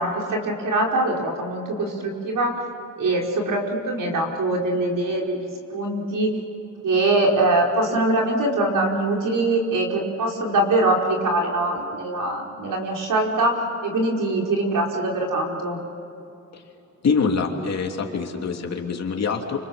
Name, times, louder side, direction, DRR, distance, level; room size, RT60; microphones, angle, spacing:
voice 1, 0.0-2.6 3.0-6.3 6.8-15.8, right 2 dB, 80° right, 0 dB, 5.2 m, -23 dB
voice 2, 17.0-19.6, left 5 dB, 55° left, 2 dB, 3.1 m, -24 dB
29.0 x 26.5 x 7.3 m, 2.9 s
wide cardioid pair, 160°, 32 cm